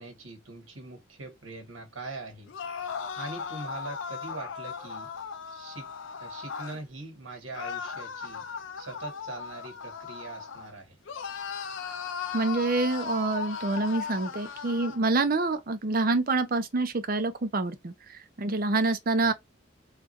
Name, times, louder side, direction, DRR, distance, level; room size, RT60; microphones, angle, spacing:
voice 1, 0.0-2.5 3.1-5.1 5.5-5.9 6.2-8.5 8.8-11.0 19.2-19.3, right 3 dB, 85° right, 1.5 m, -42 dB
sound 1, 2.5-6.8 7.5-10.7 11.0-15.0, left 6 dB, 70° left, 0.6 m, -37 dB
voice 2, 12.3-17.9 18.4-19.3, right 3 dB, 45° right, 0.6 m, -26 dB
3.5 x 2.5 x 3.1 m
head